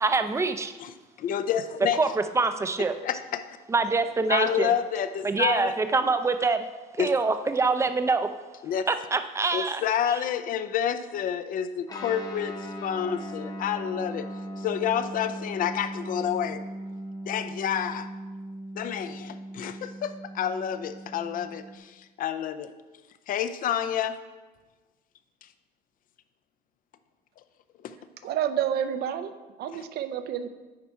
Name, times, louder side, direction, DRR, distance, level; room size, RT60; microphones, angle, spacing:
voice 1, 0.0-0.7 2.0-2.1 2.4-2.9 3.7-4.7 5.2-6.6 7.0-8.3 8.9-9.8, right 3 dB, 15° right, 9 dB, 0.5 m, -25 dB
voice 2, 0.8-2.0 2.8-3.6 4.3-5.7 7.0-7.1 8.6-8.8 9.5-14.2 14.6-16.6 17.3-18.1 18.8-22.7 23.3-24.2 27.8-28.0, left 9 dB, 55° left, 11 dB, 0.5 m, -29 dB
Guitar, 11.9-21.8, right 1 dB, 20° left, 0.9 m, -38 dB
voice 3, 28.2-29.3 29.6-30.5, right 9 dB, 70° right, 10 dB, 0.6 m, -29 dB
9.6 x 4.2 x 4.7 m, 1.2 s
cardioid pair, 110°, 17 cm